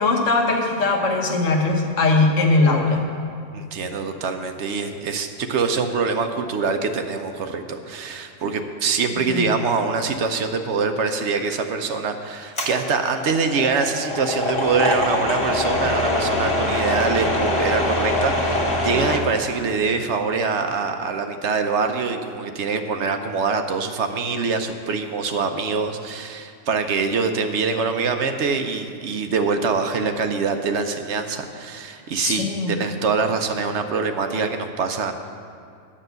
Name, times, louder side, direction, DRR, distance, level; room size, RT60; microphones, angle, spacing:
voice 1, 0.0-3.1 9.3-9.5 32.2-32.7, left 3 dB, 70° left, 2 dB, 1.5 m, -20 dB
voice 2, 3.5-35.1, right 4 dB, 65° right, 6 dB, 0.9 m, -24 dB
sound 1, 12.6-19.2, left 1 dB, 25° left, 1.0 m, -23 dB
10.0 x 6.5 x 7.9 m, 2.4 s
omnidirectional pair, 1.4 m